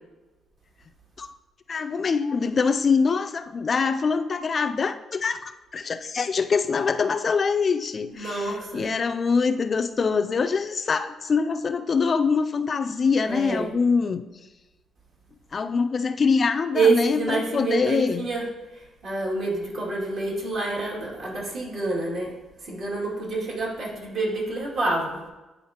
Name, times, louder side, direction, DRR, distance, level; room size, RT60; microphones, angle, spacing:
voice 1, 1.7-14.2 15.5-18.3, left 5 dB, 40° left, 8 dB, 0.3 m, -24 dB
voice 2, 8.1-8.8 13.2-13.7 16.7-22.3 22.6-25.3, right 3 dB, 65° right, -4 dB, 2.3 m, -27 dB
10.0 x 4.0 x 2.8 m, 1.1 s
cardioid pair, 90°, 0 cm